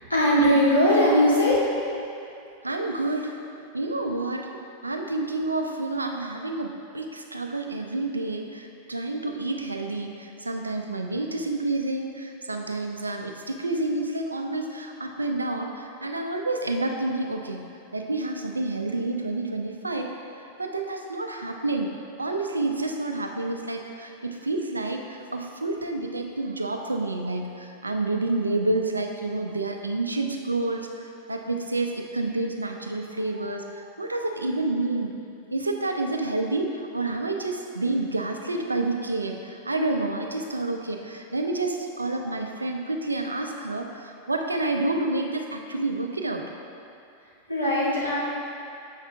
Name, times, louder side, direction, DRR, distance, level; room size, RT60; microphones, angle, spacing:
voice 1, 0.0-1.6 47.5-48.2, equal, 85° left, -8 dB, 1.6 m, -20 dB
voice 2, 2.6-3.3 3.7-17.6 17.9-20.2 20.6-35.1 35.5-46.4, right 2 dB, 80° right, 3 dB, 0.5 m, -29 dB
7.3 x 5.8 x 3.4 m, 2.6 s
figure-of-eight pair, 90°, 0 cm